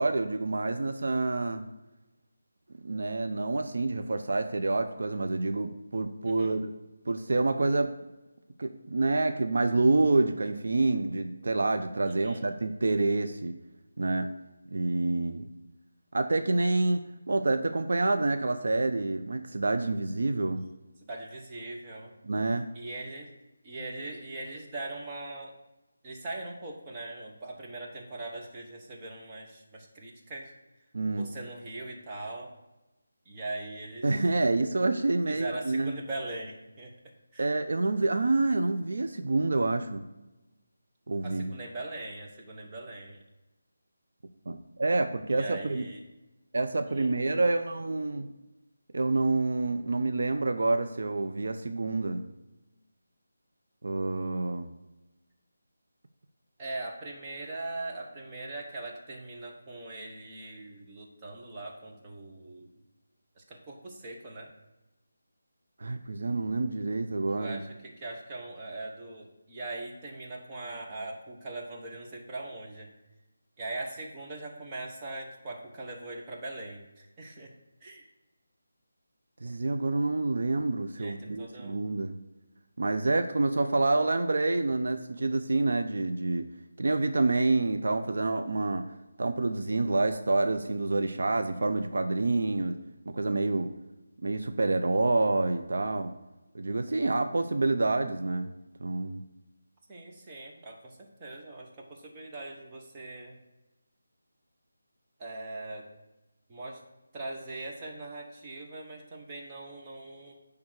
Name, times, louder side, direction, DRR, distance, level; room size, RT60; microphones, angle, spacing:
voice 1, 0.0-1.6 2.8-6.7 7.1-7.9 8.6-13.6 14.0-14.3 14.7-15.5 16.1-17.0 17.3-20.7 22.2-22.7 30.9-31.3 34.0-35.9 37.4-40.1 41.1-41.5 44.5-45.9 46.5-48.3 48.9-52.2 53.8-54.7 65.8-67.6 79.4-82.2 82.8-86.5 86.8-88.9 89.2-92.8 93.1-93.7 94.2-96.1 96.5-98.5 98.8-99.2, right 2 dB, 65° right, 7 dB, 0.7 m, -27 dB
voice 2, 6.2-6.6 12.1-12.5 21.0-22.1 22.7-23.3 23.6-25.5 26.0-30.5 31.2-32.5 33.2-34.2 35.3-36.9 37.3-37.5 41.2-43.2 45.3-46.0 46.9-47.1 56.6-62.7 63.4-64.5 67.4-72.9 73.6-77.5 77.8-78.0 81.0-81.8 99.9-103.4 105.2-105.9 106.5-106.8 107.1-110.4, right 2 dB, 20° right, -1 dB, 1.2 m, -41 dB
9.6 x 3.6 x 6.5 m, 1.0 s
figure-of-eight pair, 170°, 0 cm